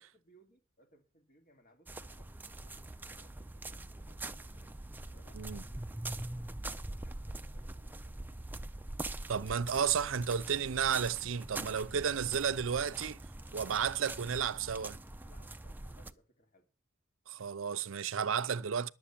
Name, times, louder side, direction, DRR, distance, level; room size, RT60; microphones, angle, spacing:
voice 1, 0.0-4.7 5.1-8.4 12.0-12.2 15.2-16.7, equal, 45° left, 2.6 m, -66 dB
sound 1, 1.9-16.1, right 2 dB, 10° right, 0.6 m, -43 dB
voice 2, 9.3-13.2 13.5-15.0 17.3-18.9, right 7 dB, 75° right, 0.6 m, -32 dB
11.5 x 7.6 x 7.3 m
head